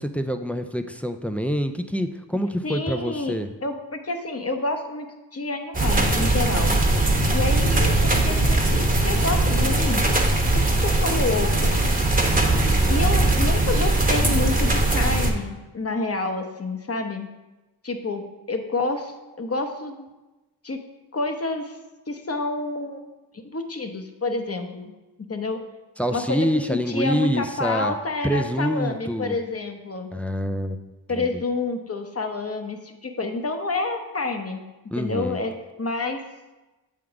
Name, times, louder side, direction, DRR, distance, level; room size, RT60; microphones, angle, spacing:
voice 1, 0.0-3.5 12.2-13.0 26.0-27.9 28.2-29.4 30.1-30.8 31.1-31.3 34.9-35.4, equal, 5° left, 7 dB, 0.4 m, -26 dB
voice 2, 2.6-3.4 3.6-6.8 7.3-10.0 10.8-12.0 12.9-17.3 17.8-20.1 20.6-20.8 21.1-21.8 22.1-23.0 23.3-24.9 25.3-25.6 26.1-30.1 31.1-34.6 35.0-35.5 35.8-36.2, left 3 dB, 30° left, 5 dB, 0.9 m, -28 dB
sound 1, 5.7-15.3, right 2 dB, 20° right, 1.0 m, -20 dB
7.6 x 3.7 x 4.8 m, 1.1 s
cardioid pair, 45°, 45 cm